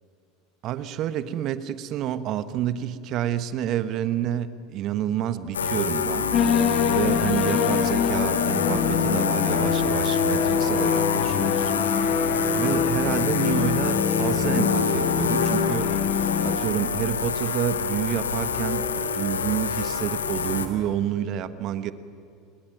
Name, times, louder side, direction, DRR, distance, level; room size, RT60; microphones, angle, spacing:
voice 1, 0.6-6.3 6.9-11.7 12.6-15.9 16.4-21.9, right 11 dB, 50° right, 13 dB, 1.2 m, -29 dB
sound 1, 5.5-20.7, left 6 dB, 85° left, 1.7 m, -27 dB
sound 2, 6.3-16.6, left 7 dB, 45° left, 1.4 m, -25 dB
28.0 x 21.0 x 9.2 m, 2.4 s
hypercardioid pair, 75°, 0 cm